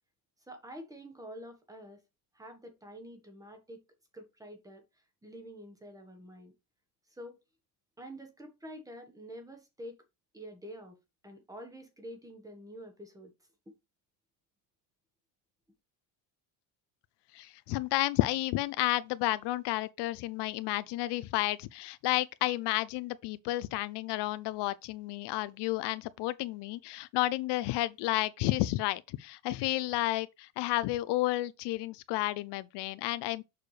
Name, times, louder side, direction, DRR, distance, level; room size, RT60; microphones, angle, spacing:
voice 1, 0.5-2.0 2.3-3.8 4.1-4.8 5.2-6.5 7.1-7.4 8.0-10.0 10.3-11.0 11.2-13.3, equal, 5° right, 1.2 m, -47 dB
voice 2, 17.3-33.4, left 17 dB, 60° left, 0.5 m, -31 dB
6.8 x 6.5 x 3.2 m
cardioid pair, 175°, 46 cm